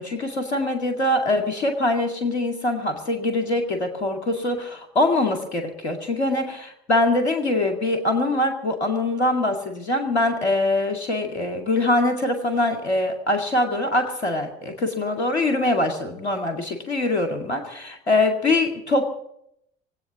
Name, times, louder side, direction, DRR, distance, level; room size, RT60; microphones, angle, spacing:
voice 1, 0.0-19.1, left 2 dB, 80° left, 5 dB, 2.1 m, -23 dB
22.5 x 8.7 x 7.2 m, 0.73 s
figure-of-eight pair, 55°, 32 cm